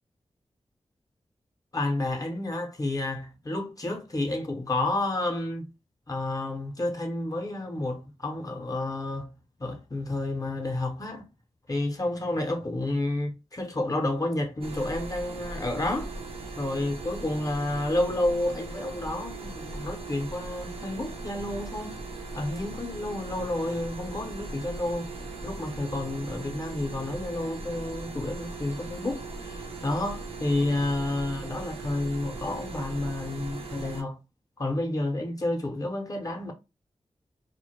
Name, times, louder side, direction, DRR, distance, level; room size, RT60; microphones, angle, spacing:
voice 1, 1.7-5.7 6.1-9.3 9.6-11.3 11.7-16.1 16.6-22.0 22.3-25.1 25.4-34.2 34.6-36.5, left 2 dB, 30° left, 0.6 m, -30 dB
sound 1, 14.6-34.0, right 3 dB, 55° right, 0.5 m, -39 dB
2.1 x 2.1 x 2.8 m
wide cardioid pair, 70°, 12 cm